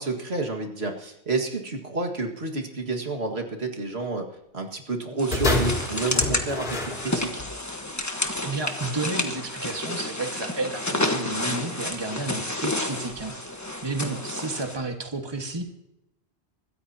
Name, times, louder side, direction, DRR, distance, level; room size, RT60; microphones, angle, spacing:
voice 1, 0.0-4.3 4.5-7.4, right 3 dB, 75° right, 2 dB, 2.2 m, -30 dB
sound 1, 5.2-14.8, left 1 dB, 15° left, 1.3 m, -30 dB
sound 2, 5.3-7.6 8.4-8.5, left 2 dB, 60° left, 4.7 m, -27 dB
voice 2, 8.4-13.4 13.8-15.6, right 3 dB, 25° right, 4 dB, 1.6 m, -31 dB
25.0 x 13.5 x 2.8 m, 0.87 s
omnidirectional pair, 1.1 m